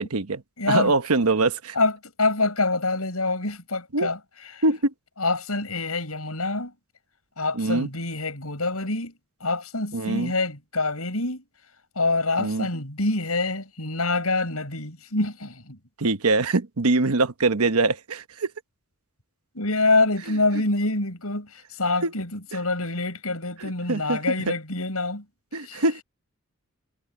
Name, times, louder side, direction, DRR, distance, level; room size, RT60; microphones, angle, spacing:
voice 1, 0.0-0.4 0.7-1.7 3.9-4.1 4.6-4.9 7.5-7.9 9.9-10.3 12.4-12.7 16.0-18.5 22.0-22.1 23.9-24.2 25.5-26.0, right 3 dB, 85° right, 1.1 m, -23 dB
voice 2, 0.6-0.9 1.8-4.2 4.5-4.6 5.2-6.7 7.4-9.1 9.4-11.4 12.0-15.8 19.5-25.2 25.6-25.8, left 3 dB, 80° left, 7.3 m, -26 dB
head